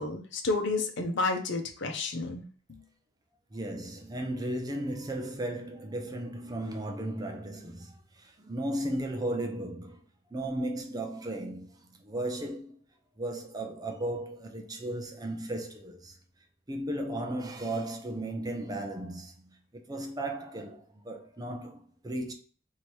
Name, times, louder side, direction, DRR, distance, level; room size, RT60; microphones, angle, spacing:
voice 1, 0.0-2.4, left 3 dB, 60° left, 0.8 m, -30 dB
voice 2, 3.5-10.0 10.3-12.7 13.2-16.2 16.7-22.3, right 1 dB, 20° right, 0.5 m, -35 dB
3.1 x 2.8 x 4.5 m
head